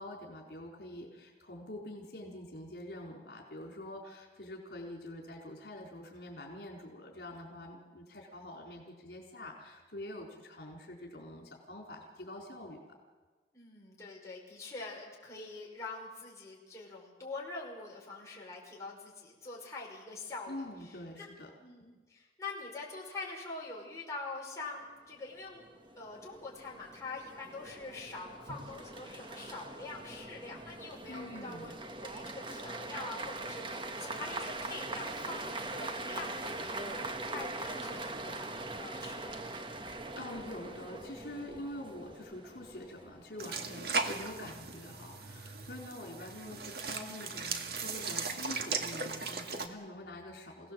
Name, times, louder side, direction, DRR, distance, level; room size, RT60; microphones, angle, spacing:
voice 1, 0.0-12.8 20.5-21.5 31.1-31.7 40.1-50.7, left 1 dB, 70° left, 0 dB, 4.3 m, -45 dB
voice 2, 13.5-20.5 20.8-21.3 21.6-25.6 26.0-31.7 32.0-39.6, left 3 dB, 20° left, -4 dB, 5.4 m, -45 dB
sound 1, 25.4-43.6, right 2 dB, 30° right, 1.3 m, -42 dB
sound 2, 28.5-33.2 33.4-34.7, equal, 90° right, 3.0 m, -57 dB
sound 3, 43.4-49.7, right 4 dB, 60° right, 1.9 m, -37 dB
27.5 x 17.5 x 7.8 m, 1.3 s
head